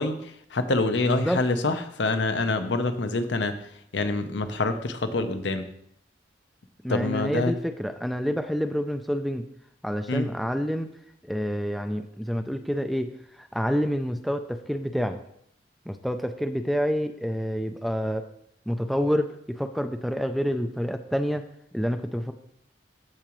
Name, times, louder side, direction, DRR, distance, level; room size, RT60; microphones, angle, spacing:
voice 1, 0.0-5.7 6.9-7.5 10.1-10.3, left 2 dB, 85° left, 8 dB, 0.8 m, -26 dB
voice 2, 1.0-1.4 6.8-9.5 9.8-10.9 11.2-15.2 15.9-18.3 18.7-21.4 21.7-22.3, equal, ahead, 6 dB, 0.3 m, -28 dB
14.0 x 4.9 x 3.1 m, 0.71 s
head